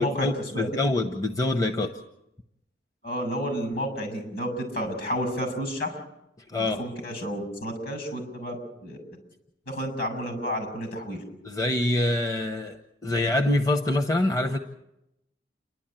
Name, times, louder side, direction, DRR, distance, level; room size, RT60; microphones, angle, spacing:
voice 1, 0.0-2.0 6.5-6.8 11.4-14.6, left 2 dB, 20° left, 7 dB, 0.9 m, -25 dB
voice 2, 3.0-5.9 6.6-8.6 8.8-9.0 9.7-11.2, equal, 60° left, 6 dB, 7.2 m, -31 dB
29.5 x 12.0 x 9.0 m, 0.88 s
head